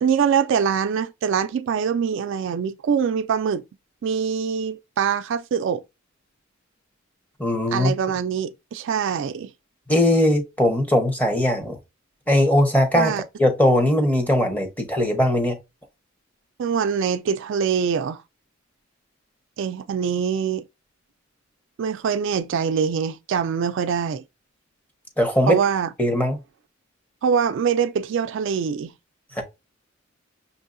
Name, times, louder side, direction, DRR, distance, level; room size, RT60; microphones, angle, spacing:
voice 1, 0.0-3.6 4.0-5.8 7.7-9.5 12.9-13.2 16.6-18.2 19.6-20.7 21.8-24.2 25.5-25.9 27.2-28.9, right 7 dB, 60° right, 0.3 m, -23 dB
voice 2, 7.4-7.9 9.9-11.8 12.3-13.1 13.4-15.6 25.2-25.6 26.0-26.4 29.4-29.5, left 1 dB, 10° left, 0.9 m, -20 dB
6.0 x 2.6 x 2.5 m
head